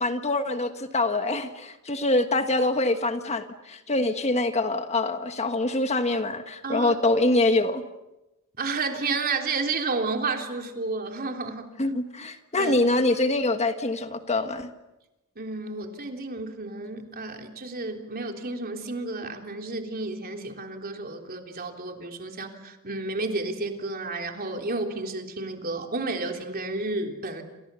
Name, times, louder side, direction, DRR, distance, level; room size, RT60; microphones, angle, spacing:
voice 1, 0.0-7.8 11.8-14.7, left 2 dB, 30° left, 8 dB, 1.5 m, -25 dB
voice 2, 6.6-6.9 8.6-11.7 12.6-12.7 15.4-27.4, right 3 dB, 45° right, 4 dB, 3.5 m, -31 dB
28.5 x 28.0 x 7.0 m, 0.97 s
head